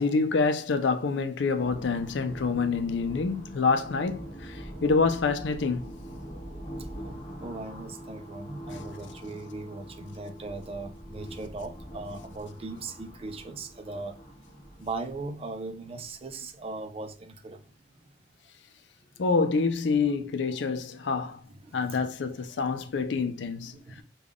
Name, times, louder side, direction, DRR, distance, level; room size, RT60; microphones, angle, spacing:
voice 1, 0.0-4.5 4.8-5.9 19.2-21.4 21.7-23.7, left 4 dB, 90° left, 0.5 m, -26 dB
sound 1, 1.6-16.9, equal, 30° left, 1.2 m, -43 dB
voice 2, 7.4-14.2 14.8-17.6 21.2-22.5 22.8-23.1 23.6-24.0, right 3 dB, 35° right, 0.4 m, -39 dB
3.6 x 2.3 x 3.5 m
head